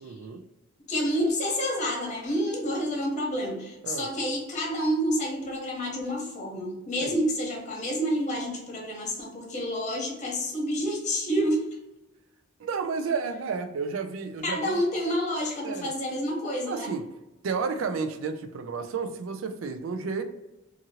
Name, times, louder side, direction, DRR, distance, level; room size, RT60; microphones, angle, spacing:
voice 1, 0.0-0.4 3.8-4.1 7.0-7.2 12.6-14.8 15.6-15.9 16.7-17.1 17.4-20.2, right 5 dB, 70° right, 7 dB, 0.4 m, -31 dB
voice 2, 0.9-11.7 14.4-16.9, equal, 35° left, -1 dB, 0.9 m, -29 dB
2.8 x 2.5 x 2.8 m, 0.95 s
head